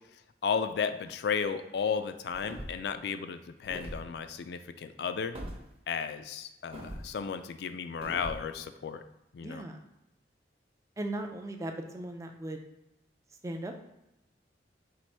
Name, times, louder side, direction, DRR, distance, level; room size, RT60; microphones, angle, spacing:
voice 1, 0.4-5.4 5.9-9.0 9.3-9.6, left 6 dB, 60° left, 10 dB, 0.3 m, -34 dB
sound 1, 2.3-2.9 3.6-4.0 5.3-5.6 6.7-7.1 8.0-8.4, equal, 30° right, 0.8 m, -41 dB
voice 2, 9.4-9.8 11.0-12.6 13.4-13.7, right 1 dB, 15° right, 4 dB, 0.4 m, -37 dB
4.6 x 2.5 x 4.1 m, 0.92 s
head